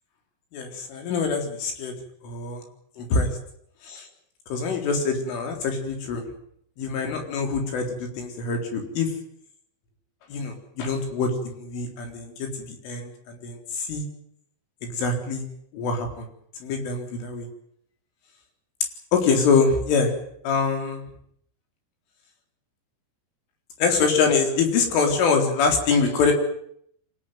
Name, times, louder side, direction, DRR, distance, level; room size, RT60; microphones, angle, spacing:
voice 1, 0.5-2.0 2.2-2.6 3.0-3.3 3.8-4.1 4.5-6.3 6.8-9.1 10.3-14.1 14.8-15.5 15.7-16.3 16.6-17.5 19.1-20.1 20.4-21.0 23.8-26.3, left 4 dB, 85° left, 4 dB, 6.5 m, -24 dB
25.5 x 18.0 x 9.5 m, 0.69 s
omnidirectional pair, 5.5 m